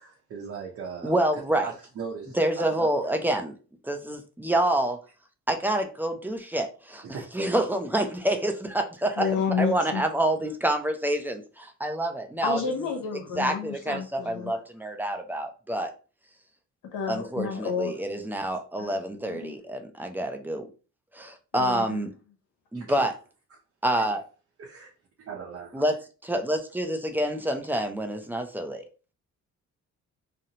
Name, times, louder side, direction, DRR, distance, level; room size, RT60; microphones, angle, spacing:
voice 1, 0.0-1.1 1.6-3.1 7.0-7.5 22.7-23.1 24.0-24.2 24.6-24.9 25.2-25.9, right 6 dB, 50° right, 0.6 m, -39 dB
voice 2, 1.0-1.7 2.3-3.5 3.8-5.0 5.5-7.0 7.3-9.3 9.6-12.6 13.4-15.9 17.1-20.7 21.1-22.1 22.7-23.1 23.8-24.2 25.7-25.9 26.2-28.9, right 1 dB, 5° right, 0.4 m, -27 dB
voice 3, 9.2-10.0 12.4-14.5 16.9-17.9 18.8-19.5 21.5-22.0, left 6 dB, 80° left, 0.8 m, -30 dB
2.7 x 2.0 x 2.7 m
cardioid pair, 90°, 30 cm